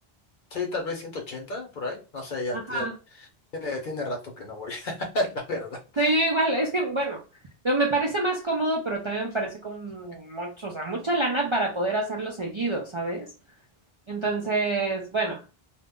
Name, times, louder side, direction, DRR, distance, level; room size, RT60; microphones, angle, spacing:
voice 1, 0.5-2.9 3.6-6.1, left 2 dB, 55° left, 2 dB, 0.9 m, -32 dB
voice 2, 2.5-3.0 6.0-7.2 7.6-13.3 14.1-15.4, right 2 dB, 40° right, -1 dB, 0.4 m, -27 dB
2.4 x 2.1 x 3.5 m, 0.31 s
omnidirectional pair, 1.0 m